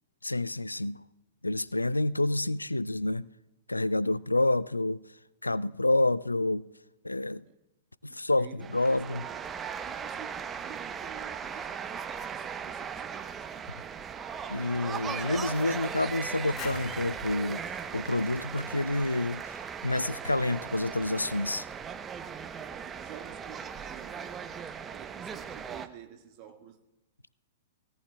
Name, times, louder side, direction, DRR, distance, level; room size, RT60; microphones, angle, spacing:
voice 1, 0.2-1.0 1.4-3.3 3.7-5.0 5.4-6.6 7.0-7.4 8.0-9.2 14.5-21.7, left 2 dB, 85° left, 0.3 m, -28 dB
voice 2, 8.1-12.0 12.3-14.5 22.8-24.4 24.9-26.8, right 11 dB, 35° right, 1.5 m, -51 dB
sound 1, 8.6-25.9, right 7 dB, 15° right, 0.7 m, -38 dB
sound 2, 16.5-19.3, left 7 dB, 30° left, 1.6 m, -46 dB
20.0 x 17.0 x 2.2 m
figure-of-eight pair, 105°, 0 cm